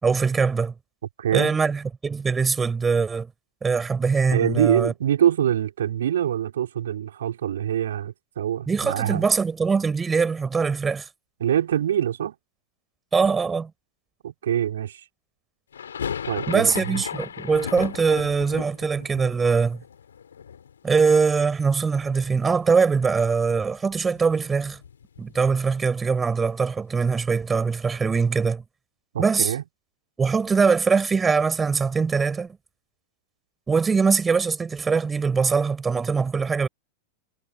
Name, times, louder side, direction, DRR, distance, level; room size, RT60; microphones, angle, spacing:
voice 1, 0.0-0.7 1.3-3.3 3.6-4.9 8.7-11.1 13.1-13.7 16.5-19.8 20.8-24.8 25.2-28.6 29.2-29.5 30.2-32.6 33.7-36.7, right 5 dB, 15° right, 5.3 m, -22 dB
voice 2, 1.2-1.6 4.3-9.2 11.4-12.3 14.2-15.0 16.3-17.0 29.1-29.6, right 10 dB, 65° right, 4.9 m, -24 dB
sound 1, 15.7-21.7 21.9-22.8 23.0-23.1 23.4-25.6, left 8 dB, 70° left, 7.3 m, -36 dB
figure-of-eight pair, 90°, 0 cm